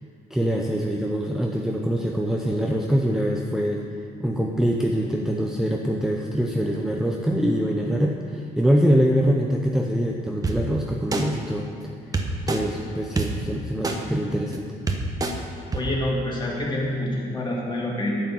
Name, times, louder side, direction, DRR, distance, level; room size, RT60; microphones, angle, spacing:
voice 1, 0.3-3.8 4.2-11.9 12.5-14.7, equal, ahead, 0 dB, 0.7 m, -24 dB
sound 1, 10.4-10.5 11.1-11.2 12.1-12.6 13.2-13.3 13.8-14.0 14.5-14.6 14.9-15.3 15.7-15.8, right 3 dB, 20° right, 1.1 m, -24 dB
voice 2, 15.7-18.1, left 1 dB, 25° left, -3 dB, 2.8 m, -27 dB
9.2 x 8.0 x 7.2 m, 2.3 s
cardioid pair, 110°, 17 cm